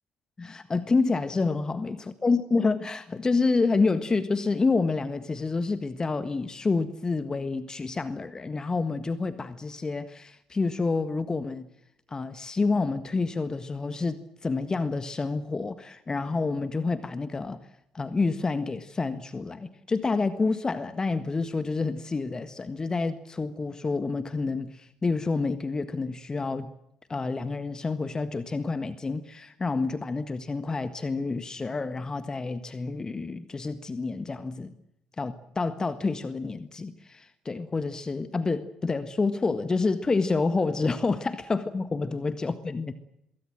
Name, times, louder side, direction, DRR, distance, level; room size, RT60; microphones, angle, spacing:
voice 1, 0.4-2.0 2.2-11.7 12.1-17.6 17.9-26.7 27.1-34.7 35.2-42.9, left 3 dB, 25° left, 12 dB, 1.6 m, -28 dB
24.5 x 22.5 x 7.9 m, 0.80 s
figure-of-eight pair, 50°, 3 cm